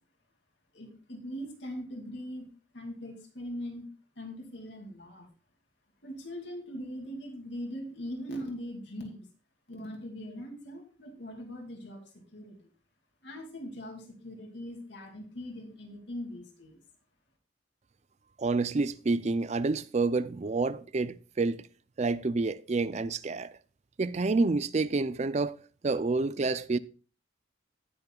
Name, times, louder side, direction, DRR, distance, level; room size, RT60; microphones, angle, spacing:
voice 1, 0.7-2.5 2.7-3.9 4.2-5.3 6.0-9.2 9.7-12.6 13.2-16.8, equal, 65° left, 2.5 m, -41 dB
voice 2, 18.4-21.6 22.0-23.5 24.0-25.6 25.8-26.8, right 3 dB, 35° right, 0.4 m, -28 dB
18.0 x 6.7 x 2.3 m
head